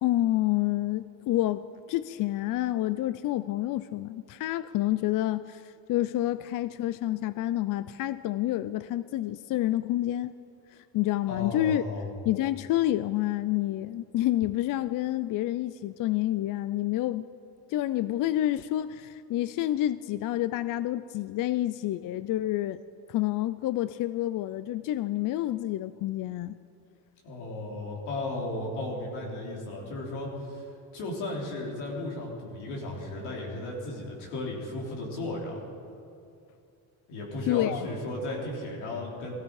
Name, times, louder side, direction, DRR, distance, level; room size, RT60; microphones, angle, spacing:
voice 1, 0.0-10.3 10.9-11.8 12.3-17.3 17.7-22.8 23.1-26.5 37.5-37.9, left 14 dB, 55° left, 14 dB, 0.5 m, -28 dB
voice 2, 11.3-12.2 27.2-30.6 30.9-35.6 37.1-39.4, left 2 dB, 90° left, -2 dB, 3.7 m, -35 dB
18.0 x 15.5 x 4.8 m, 2.5 s
cardioid pair, 105°, 40 cm